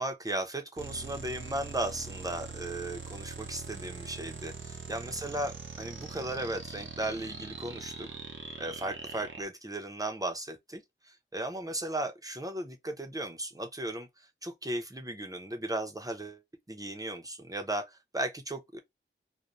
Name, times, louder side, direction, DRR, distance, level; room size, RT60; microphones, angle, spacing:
voice 1, 0.0-8.1 8.6-16.4 16.7-18.8, right 1 dB, 15° right, 0.7 m, -36 dB
sound 1, 0.8-9.4, right 4 dB, 65° right, 0.7 m, -42 dB
2.6 x 2.2 x 3.0 m
wide cardioid pair, 55°, 21 cm